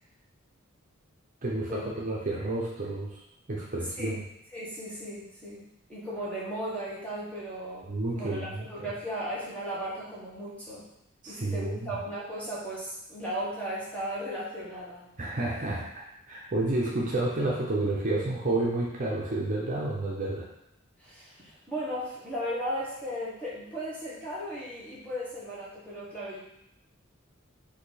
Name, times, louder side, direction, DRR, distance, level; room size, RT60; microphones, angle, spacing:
voice 1, 1.4-3.2 3.5-4.2 7.8-8.9 11.2-11.9 15.2-20.5, right 2 dB, 40° right, -4 dB, 0.7 m, -30 dB
voice 2, 4.5-10.8 11.3-15.1 21.0-26.4, equal, 5° left, -9 dB, 1.4 m, -36 dB
4.4 x 2.8 x 4.1 m, 0.79 s
head